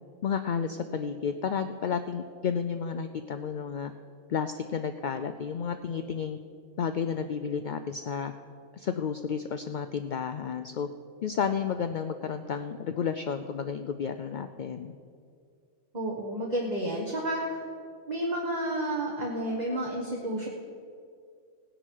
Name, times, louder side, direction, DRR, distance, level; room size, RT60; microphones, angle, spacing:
voice 1, 0.2-3.9 4.3-6.4 6.8-8.3 8.7-10.9 11.2-15.0, left 7 dB, 70° left, 8 dB, 0.4 m, -31 dB
voice 2, 15.9-17.6 18.1-20.5, right 1 dB, 35° right, -1 dB, 1.3 m, -31 dB
17.5 x 10.0 x 4.6 m, 2.2 s
omnidirectional pair, 1.4 m